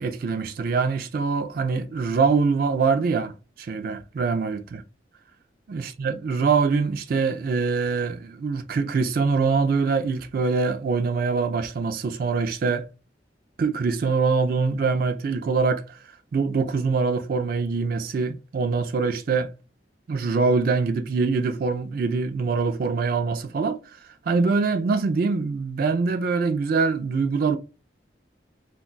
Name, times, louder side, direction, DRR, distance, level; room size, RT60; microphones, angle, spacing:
voice 1, 0.0-3.3 3.6-4.8 5.7-12.8 13.6-16.0 16.3-19.5 20.1-23.8 24.3-27.6, right 4 dB, 50° right, 0.3 m, -24 dB
2.3 x 2.2 x 3.7 m
head